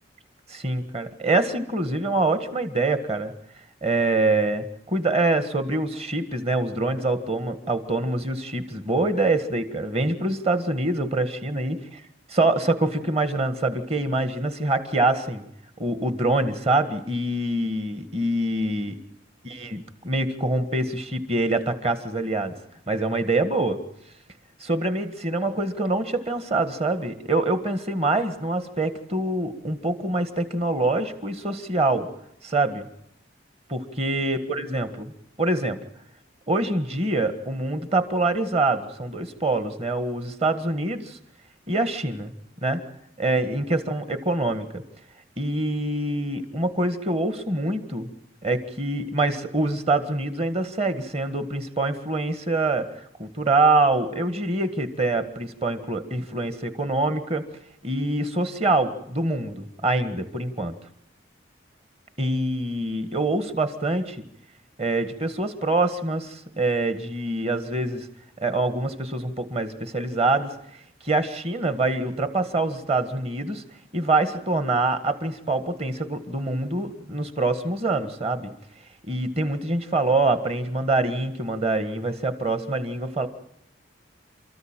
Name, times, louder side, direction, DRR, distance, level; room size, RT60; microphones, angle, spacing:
voice 1, 0.5-3.3 3.8-11.8 12.4-15.4 15.8-19.0 19.4-22.5 22.9-23.8 24.6-32.1 32.4-32.9 33.7-35.1 35.4-35.8 36.5-41.2 41.7-42.3 42.6-42.8 43.2-44.8 45.4-48.1 48.4-52.9 53.2-57.4 57.8-60.7 62.2-64.2 64.8-68.1 68.4-70.5 71.0-73.6 73.9-78.5 79.1-83.3, right 2 dB, 30° right, 9 dB, 1.7 m, -25 dB
29.0 x 14.0 x 9.0 m, 0.77 s
head